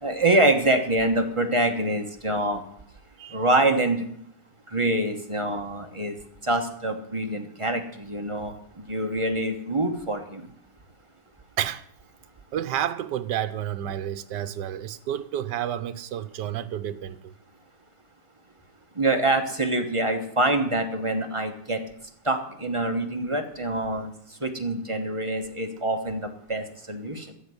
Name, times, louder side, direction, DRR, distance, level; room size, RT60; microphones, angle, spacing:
voice 1, 0.0-2.6 3.3-4.1 4.7-6.2 6.4-10.5 19.0-21.8 22.2-24.1 24.4-27.3, right 1 dB, 20° right, 1.1 m, -25 dB
voice 2, 12.5-17.3, right 10 dB, 80° right, 1.4 m, -30 dB
15.0 x 5.7 x 9.8 m
omnidirectional pair, 1.9 m